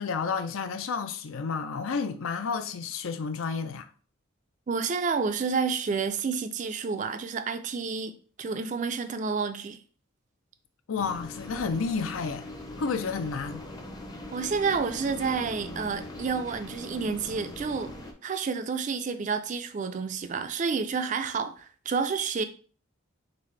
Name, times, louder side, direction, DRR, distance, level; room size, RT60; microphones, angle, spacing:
voice 1, 0.0-3.9 10.9-12.5 12.8-13.7, left 5 dB, 75° left, 0.5 m, -31 dB
voice 2, 4.7-8.1 8.4-9.8 14.3-17.9 18.2-22.4, right 5 dB, 35° right, 0.3 m, -29 dB
sound 1, 11.0-18.1, left 1 dB, 20° left, 0.6 m, -41 dB
4.0 x 3.5 x 3.2 m
head